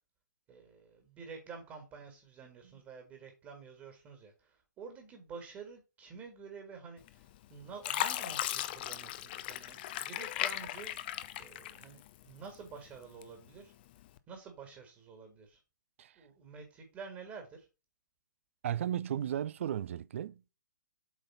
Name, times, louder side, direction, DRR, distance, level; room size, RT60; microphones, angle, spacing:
voice 1, 0.5-13.7 14.3-15.6 16.2-17.7, right 5 dB, 20° right, 1.8 m, -49 dB
Fill (with liquid), 7.1-7.4 7.8-12.2 12.7-13.5 14.0-14.2, left 13 dB, 30° left, 0.6 m, -37 dB
voice 2, 18.6-20.5, right 10 dB, 40° right, 0.4 m, -35 dB
7.9 x 3.9 x 5.5 m
figure-of-eight pair, 125°, 10 cm